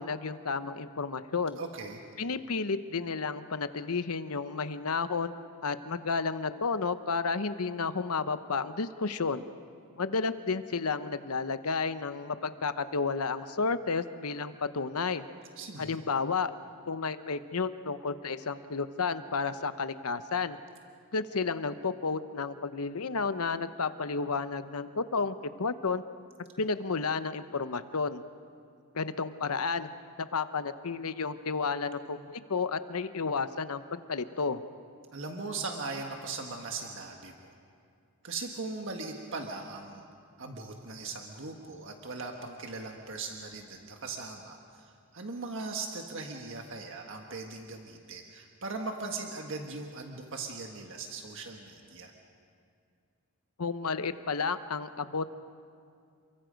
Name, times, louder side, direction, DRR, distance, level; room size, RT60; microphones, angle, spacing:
voice 1, 0.0-1.6 2.2-5.3 5.6-9.4 10.0-15.2 15.8-16.5 16.9-20.6 21.1-26.0 26.6-28.2 28.9-29.9 30.2-34.6 53.6-55.3, left 4 dB, 75° left, 12 dB, 0.9 m, -32 dB
voice 2, 1.6-2.0 15.6-16.0 35.1-37.5 38.2-40.0 40.4-52.1, right 3 dB, 60° right, 2 dB, 1.6 m, -39 dB
29.0 x 23.5 x 5.2 m, 2.3 s
head